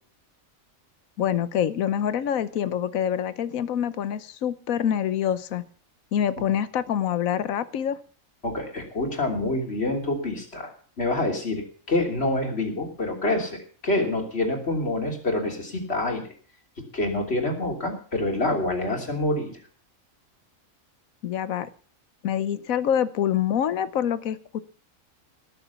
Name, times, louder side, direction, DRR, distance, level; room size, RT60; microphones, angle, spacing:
voice 1, 1.2-5.6 6.1-8.0 21.2-21.7 22.2-24.6, left 9 dB, 80° left, 14 dB, 1.3 m, -26 dB
voice 2, 8.4-10.7 11.0-13.6 13.8-16.2 16.9-19.5, left 2 dB, 50° left, 2 dB, 3.4 m, -26 dB
19.0 x 7.1 x 7.0 m, 0.43 s
omnidirectional pair, 1.4 m